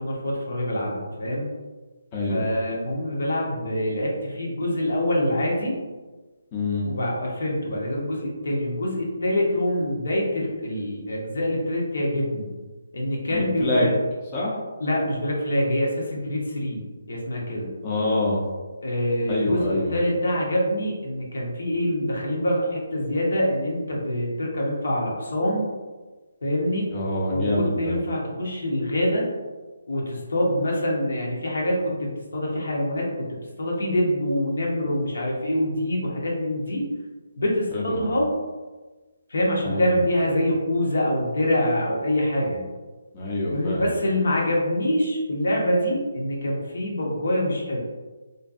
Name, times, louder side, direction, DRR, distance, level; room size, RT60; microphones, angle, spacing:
voice 1, 0.0-1.5 2.3-5.7 6.8-12.5 12.9-13.9 14.8-17.7 18.8-25.7 26.4-26.9 27.3-29.3 29.9-33.3 33.6-36.9 37.4-38.3 39.3-42.6 43.5-47.8, left 1 dB, 70° left, -2 dB, 0.7 m, -25 dB
voice 2, 2.1-2.5 6.5-6.9 13.3-13.9 14.3-14.5 17.8-18.4 19.3-20.0 26.9-27.9 37.7-38.0 39.6-39.9 43.1-43.9, left 1 dB, 25° left, -6 dB, 0.5 m, -25 dB
2.6 x 2.2 x 2.4 m, 1.3 s
figure-of-eight pair, 150°, 0 cm